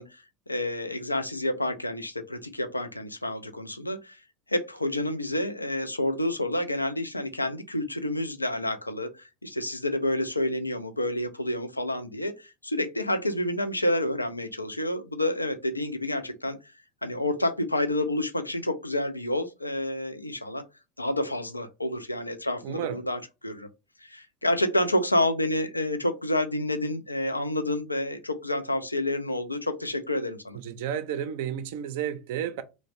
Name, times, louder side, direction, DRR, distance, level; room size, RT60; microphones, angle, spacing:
voice 1, 0.0-4.2 4.5-16.6 17.0-20.6 21.0-23.7 24.0-30.6, left 1 dB, 85° left, 0.4 m, -29 dB
voice 2, 22.6-23.0 30.6-32.6, right 9 dB, 60° right, 0.4 m, -32 dB
3.1 x 2.0 x 2.5 m
figure-of-eight pair, 75°, 0 cm